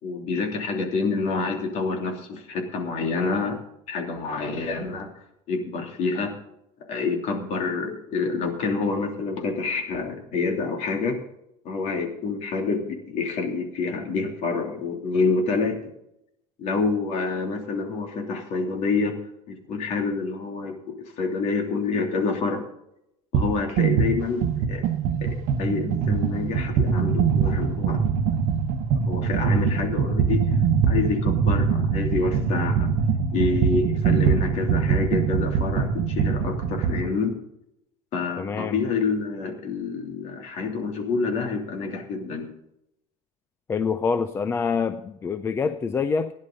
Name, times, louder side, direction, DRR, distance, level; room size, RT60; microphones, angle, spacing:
voice 1, 0.0-3.6 3.9-5.1 5.5-6.3 6.9-11.2 11.6-15.8 16.6-19.1 19.5-22.6 23.3-24.9 25.2-28.0 29.1-30.4 30.9-32.9 33.3-37.4 38.1-42.5, left 4 dB, 40° left, 3 dB, 3.0 m, -27 dB
sound 1, 23.3-23.5 23.8-37.1, right 6 dB, 50° right, 1.3 m, -23 dB
voice 2, 38.4-38.8 43.7-46.3, left 5 dB, 15° left, 11 dB, 0.4 m, -26 dB
16.5 x 11.0 x 3.9 m, 0.80 s
cardioid pair, 165°, 17 cm